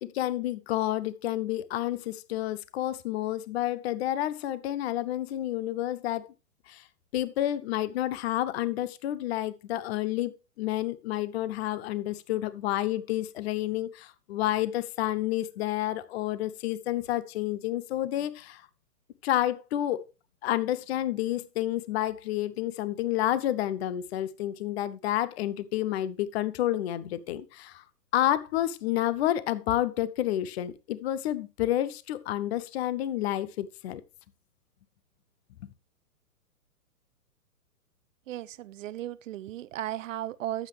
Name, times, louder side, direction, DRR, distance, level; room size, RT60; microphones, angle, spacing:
voice 1, 0.0-6.3 6.7-6.8 7.1-18.6 19.2-20.0 20.4-27.8 28.1-34.0 35.6-35.7, left 13 dB, 45° left, 0.8 m, -30 dB
voice 2, 38.3-40.7, right 13 dB, 60° right, 0.6 m, -35 dB
12.0 x 8.2 x 3.3 m
hypercardioid pair, 135°, 45 cm